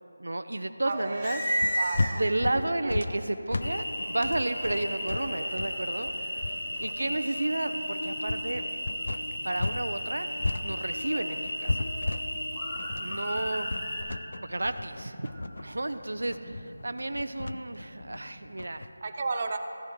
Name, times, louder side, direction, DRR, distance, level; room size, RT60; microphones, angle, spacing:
voice 1, 0.2-1.4 2.1-6.1 6.8-8.6 9.4-10.3 10.6-11.8 13.0-13.7 14.4-15.3 15.6-18.9, right 2 dB, 80° right, 10 dB, 0.5 m, -32 dB
voice 2, 0.8-3.2 19.0-19.6, right 3 dB, 35° right, 5 dB, 0.5 m, -35 dB
sound 1, 0.9-2.6 3.2-19.0, equal, 15° left, 1.0 m, -39 dB
sound 2, 1.6-9.9 10.1-18.9, left 2 dB, 65° left, 0.3 m, -34 dB
Cricket, 3.6-14.0, left 1 dB, 85° left, 2.3 m, -35 dB
14.5 x 8.8 x 3.7 m, 2.9 s
figure-of-eight pair, 175°, 0 cm